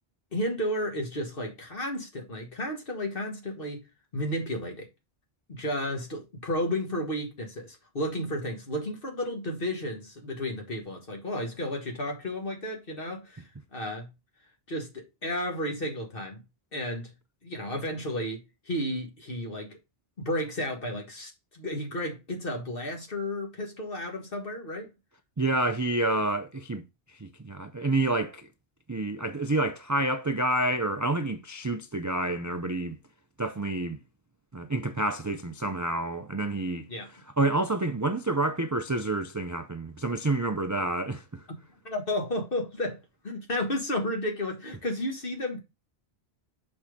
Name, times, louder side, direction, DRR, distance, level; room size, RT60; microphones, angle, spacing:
voice 1, 0.3-3.8 4.1-4.9 5.5-13.4 13.7-14.1 14.7-16.4 16.7-17.1 17.4-19.8 20.2-24.9 36.9-37.1 41.5-41.6 41.8-45.6, left 1 dB, 60° left, 1.9 m, -32 dB
voice 2, 25.4-26.8 27.1-28.5 28.9-33.0 33.4-34.0 34.5-36.9 37.4-41.4, right 2 dB, 25° right, 0.4 m, -28 dB
6.0 x 4.3 x 5.0 m
omnidirectional pair, 1.1 m